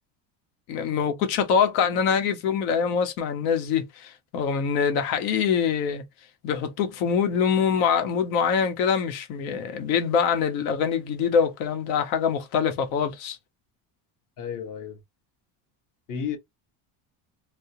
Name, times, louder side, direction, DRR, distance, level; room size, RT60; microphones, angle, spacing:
voice 1, 0.7-6.0 6.4-13.4, left 7 dB, 85° left, 1.2 m, -24 dB
voice 2, 14.4-15.0 16.1-16.4, left 7 dB, 50° left, 1.3 m, -32 dB
3.4 x 2.3 x 2.8 m
cardioid pair, 165°, 42 cm